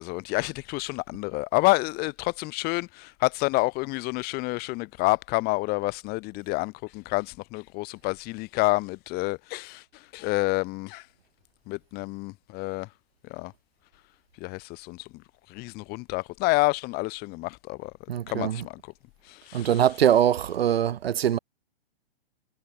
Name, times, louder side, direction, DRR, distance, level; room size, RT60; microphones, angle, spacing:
voice 1, 0.0-9.8 10.1-11.0 11.7-12.9 13.3-13.5 14.4-15.1 15.5-17.9 18.3-18.9 19.3-19.7, left 23 dB, 30° left, 1.6 m, -28 dB
voice 2, 18.1-18.6 19.5-21.4, right 10 dB, 70° right, 1.2 m, -23 dB
hypercardioid pair, 130°, 31 cm